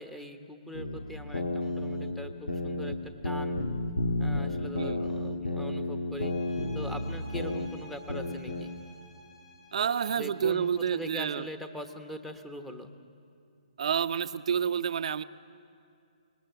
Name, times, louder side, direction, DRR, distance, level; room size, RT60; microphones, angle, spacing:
voice 1, 0.0-3.6 4.2-6.3 6.7-8.7 10.1-12.9, equal, 5° left, 6 dB, 1.2 m, -42 dB
sound 1, 0.7-3.0 3.2-7.7 8.1-8.6, left 2 dB, 85° left, 2.0 m, -32 dB
sound 2, 6.1-11.4, left 1 dB, 55° left, 4.4 m, -55 dB
voice 2, 9.7-11.5 13.8-15.2, right 7 dB, 60° right, 12 dB, 0.7 m, -29 dB
26.5 x 20.0 x 6.9 m, 2.5 s
hypercardioid pair, 145°, 4 cm